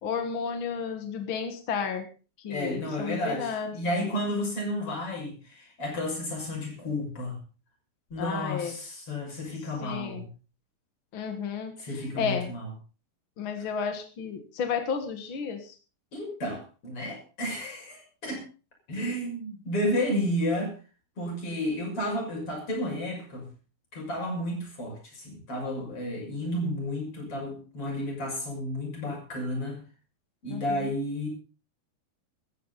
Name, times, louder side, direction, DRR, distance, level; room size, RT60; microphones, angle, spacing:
voice 1, 0.0-2.0 2.4-4.1 8.2-8.7 9.8-10.2 11.1-11.7 12.2-12.5 13.4-15.7 30.5-30.9, left 6 dB, 55° left, 6 dB, 1.4 m, -32 dB
voice 2, 2.5-7.4 8.1-10.2 11.8-12.7 16.1-18.4 18.9-20.7 21.2-23.5 23.9-29.8 30.4-31.3, left 1 dB, 35° left, 0 dB, 7.0 m, -32 dB
16.5 x 14.0 x 4.1 m, 0.36 s
omnidirectional pair, 4.7 m